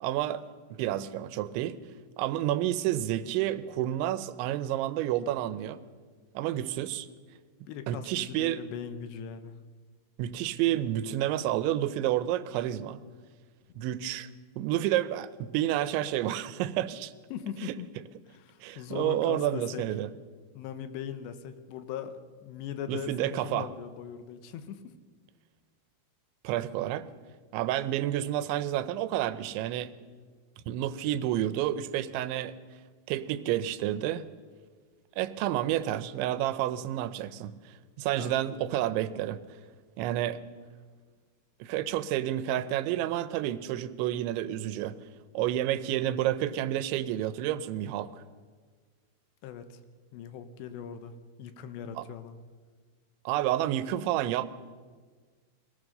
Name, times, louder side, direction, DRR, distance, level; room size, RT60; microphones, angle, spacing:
voice 1, 0.0-0.4 0.7-1.8 2.2-5.8 6.3-7.1 7.9-8.6 10.2-13.0 13.8-14.3 14.6-17.1 17.7-17.8 18.6-20.1 22.9-23.7 26.4-27.1 27.5-30.0 30.7-32.5 33.1-34.3 35.2-37.5 38.0-39.4 40.0-40.4 41.6-45.0 45.3-48.2 52.0-52.1 53.3-54.5, right 12 dB, 85° right, 14 dB, 3.1 m, -30 dB
voice 2, 7.7-9.5 17.3-17.9 18.3-19.8 20.6-24.9 38.2-38.7 49.4-49.8 50.1-52.4, left 8 dB, 75° left, 10 dB, 3.1 m, -40 dB
22.5 x 18.0 x 6.6 m, 1.5 s
omnidirectional pair, 5.2 m